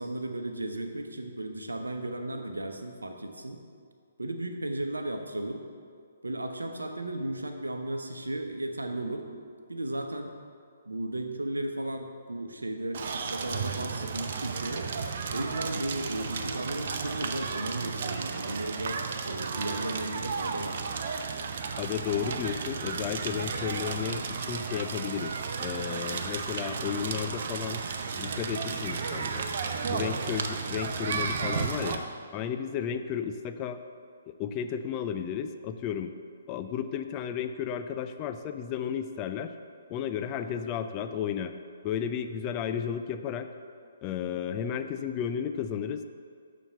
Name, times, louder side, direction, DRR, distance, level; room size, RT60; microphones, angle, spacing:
voice 1, 0.0-3.6 4.2-5.6 6.2-9.3 9.7-10.3 10.9-14.9 15.3-20.8, right 1 dB, 75° right, 5 dB, 0.9 m, -35 dB
Crackle, 12.9-32.0, right 5 dB, 45° right, 0.7 m, -33 dB
voice 2, 21.8-25.3 25.6-27.8 28.2-29.5 29.9-32.0 32.3-33.8 34.3-36.1 36.5-39.5 39.9-41.6 41.8-43.5 44.0-46.0, left 8 dB, 25° left, 8 dB, 0.4 m, -33 dB
7.1 x 6.4 x 6.8 m, 2.2 s
figure-of-eight pair, 130°, 0 cm